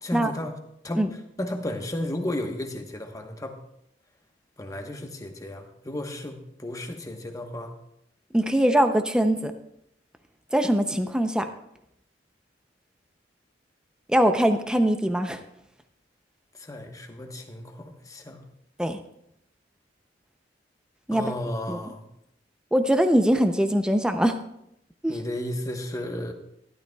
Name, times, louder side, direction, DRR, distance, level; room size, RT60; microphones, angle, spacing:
voice 1, 0.0-0.5 0.8-1.0 1.4-3.5 4.6-7.7 16.5-18.4 21.1-22.0 25.1-26.3, left 1 dB, 20° left, 4 dB, 1.1 m, -33 dB
voice 2, 8.3-9.5 10.5-11.5 14.1-15.4 18.8-19.0 21.1-21.2 21.7-21.8 22.7-24.4 25.0-25.2, right 1 dB, 5° right, 7 dB, 0.5 m, -22 dB
13.5 x 12.0 x 2.3 m, 0.78 s
head